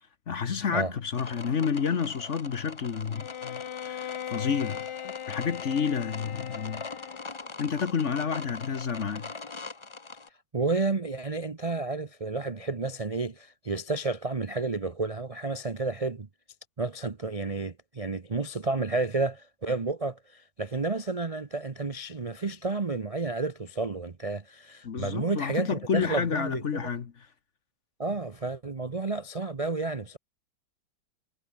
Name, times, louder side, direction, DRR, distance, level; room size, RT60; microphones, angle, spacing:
voice 1, 0.3-6.8 7.6-9.3 24.8-27.3, left 6 dB, 45° left, 1.2 m, -30 dB
sound 1, 1.1-10.3, left 3 dB, 25° left, 0.6 m, -42 dB
Bowed string instrument, 3.1-7.5, left 10 dB, 60° left, 1.7 m, -39 dB
voice 2, 10.5-16.3 16.8-26.9 28.0-30.2, right 3 dB, 60° right, 0.3 m, -31 dB
omnidirectional pair, 2.2 m